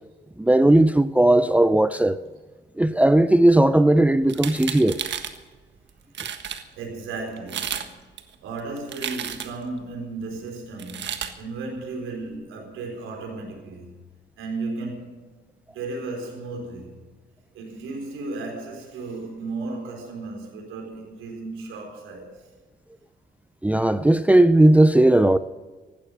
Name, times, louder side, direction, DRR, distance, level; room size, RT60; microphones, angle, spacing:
voice 1, 0.4-2.2 2.8-5.0 23.6-25.4, right 1 dB, 5° right, 0.5 m, -17 dB
sound 1, 4.2-5.4 5.9-6.0 6.1-6.6 7.4-7.9 8.2-9.7 10.8-11.3, right 8 dB, 65° right, 1.6 m, -32 dB
voice 2, 6.7-8.0 8.4-14.0 14.4-15.3 15.7-16.9 17.5-22.3, right 3 dB, 90° right, 4.2 m, -34 dB
15.0 x 12.5 x 6.6 m
cardioid pair, 90°, 20 cm